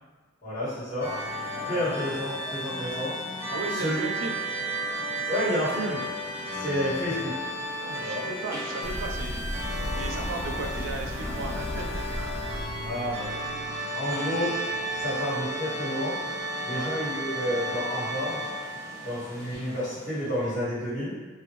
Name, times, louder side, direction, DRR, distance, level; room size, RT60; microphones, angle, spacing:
voice 1, 0.4-1.1 1.7-3.1 3.7-4.0 5.3-6.0 6.5-7.3 8.0-8.2 12.8-13.3 13.9-14.6 15.0-16.2 16.6-18.4 19.0-21.2, equal, 40° left, -12 dB, 1.4 m, -30 dB
sound 1, 1.0-20.4, right 1 dB, 15° right, 0.6 m, -34 dB
voice 2, 3.5-4.4 7.8-9.5 10.0-12.0 16.6-16.9, right 3 dB, 75° right, 2 dB, 0.4 m, -36 dB
sound 2, 8.8-13.7, left 1 dB, 55° left, 0.3 m, -35 dB
2.5 x 2.1 x 3.0 m, 1.4 s
head